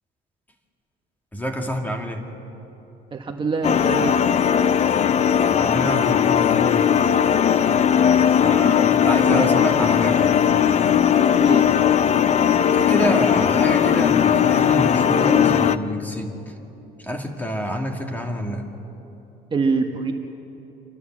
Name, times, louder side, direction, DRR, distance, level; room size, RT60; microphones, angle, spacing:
voice 1, 1.3-2.3 5.5-6.9 8.4-10.3 12.7-16.5 17.0-18.7, equal, 10° left, 2 dB, 2.3 m, -27 dB
voice 2, 3.1-4.1 9.2-9.9 11.4-11.7 19.5-20.1, right 4 dB, 30° right, 3 dB, 1.4 m, -25 dB
sound 1, 3.6-15.8, left 8 dB, 45° left, 0.6 m, -18 dB
28.0 x 12.5 x 7.5 m, 3.0 s
cardioid pair, 110°, 17 cm